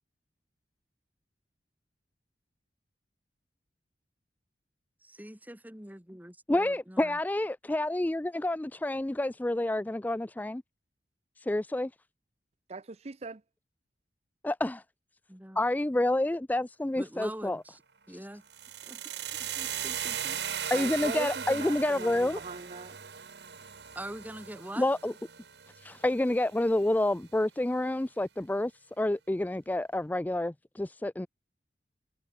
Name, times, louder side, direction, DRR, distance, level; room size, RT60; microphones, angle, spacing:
voice 1, 5.0-7.2 15.3-15.6 16.9-17.8 18.1-18.4 18.8-19.1 19.4-20.4 23.9-24.9, right 1 dB, 10° right, 2.5 m, -44 dB
voice 2, 6.5-10.6 11.4-11.9 14.4-14.8 15.6-17.6 20.7-22.4 24.8-25.1 25.8-28.7 29.0-31.3, left 1 dB, 10° left, 0.3 m, -28 dB
voice 3, 12.7-13.4 20.7-23.0, right 3 dB, 35° right, 0.6 m, -41 dB
sound 1, 18.5-26.5, right 8 dB, 70° right, 1.8 m, -38 dB
head